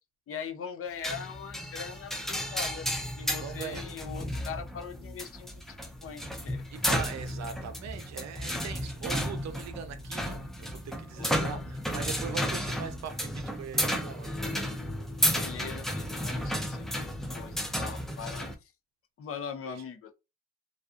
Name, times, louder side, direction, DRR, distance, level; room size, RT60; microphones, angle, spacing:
voice 1, 0.3-2.9 3.2-5.6 6.0-6.9 11.2-11.4 15.3-18.5 19.2-20.1, left 7 dB, 50° left, 0.5 m, -41 dB
sound 1, 1.0-18.5, equal, ahead, 0.5 m, -33 dB
voice 2, 3.4-3.9 6.7-14.4 19.7-19.8, right 7 dB, 65° right, 0.5 m, -41 dB
2.4 x 2.3 x 2.4 m
cardioid pair, 90°, 30 cm